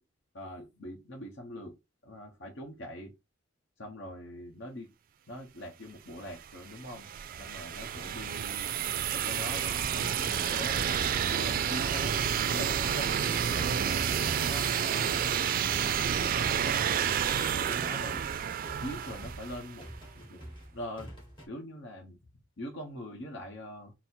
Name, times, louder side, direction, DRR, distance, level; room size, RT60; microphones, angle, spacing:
voice 1, 0.3-1.8 2.0-3.1 3.8-4.9 5.3-7.1 7.4-10.9 11.3-15.3 15.8-16.7 17.7-18.2 18.8-19.9 20.1-20.4 20.7-21.1 21.5-22.2 22.6-23.9, left 1 dB, 65° left, 1.0 m, -43 dB
sound 1, 6.2-20.0, right 8 dB, 45° right, 0.3 m, -30 dB
sound 2, 12.6-21.5, equal, 25° left, 1.6 m, -48 dB
4.1 x 2.1 x 4.3 m
head